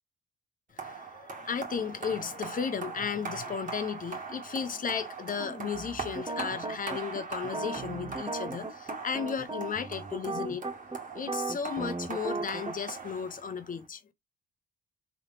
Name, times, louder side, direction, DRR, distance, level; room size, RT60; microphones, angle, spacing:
voice 1, 0.7-10.7 11.1-14.0, left 6 dB, 45° left, 1.0 m, -35 dB
sound 1, 0.8-13.8, right 4 dB, 40° right, 1.8 m, -41 dB
sound 2, 5.4-12.7, right 3 dB, 20° right, 0.8 m, -36 dB
4.1 x 3.3 x 3.0 m
cardioid pair, 90°, 20 cm